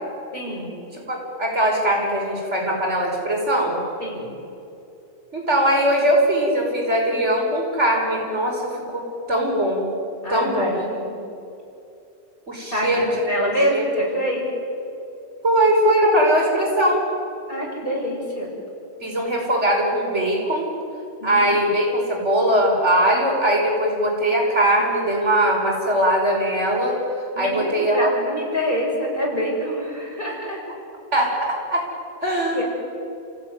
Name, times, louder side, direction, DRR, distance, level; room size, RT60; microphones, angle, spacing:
voice 1, 0.3-0.7 4.0-4.4 10.2-11.2 12.7-14.5 17.5-18.5 21.2-21.5 27.4-30.6 32.5-32.6, equal, 50° left, -3 dB, 7.1 m, -26 dB
voice 2, 1.1-3.8 5.3-8.6 8.9-9.9 10.3-10.8 12.5-13.1 13.4-13.8 15.4-17.0 19.0-20.7 21.2-27.0 27.4-28.1 31.1-31.8 32.2-32.6, right 1 dB, 80° right, -1 dB, 5.9 m, -20 dB
30.0 x 16.0 x 9.6 m, 2.7 s
omnidirectional pair, 1.2 m